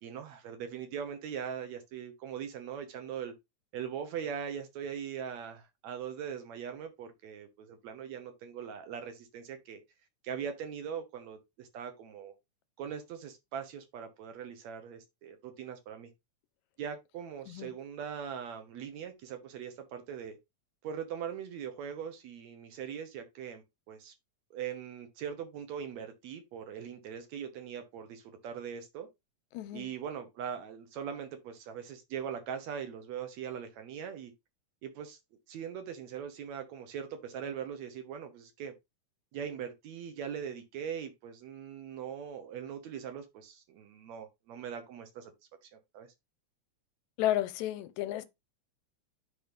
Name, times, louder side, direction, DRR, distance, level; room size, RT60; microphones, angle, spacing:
voice 1, 0.0-3.3 3.7-9.8 10.2-12.3 12.8-16.1 16.8-20.4 20.8-24.1 24.5-29.1 29.7-34.3 34.8-35.2 35.5-38.7 39.3-45.3 45.6-46.1, right 8 dB, 70° right, 2.2 m, -41 dB
voice 2, 29.5-29.9 47.2-48.2, left 13 dB, 85° left, 2.0 m, -32 dB
8.5 x 3.1 x 5.2 m
omnidirectional pair, 3.3 m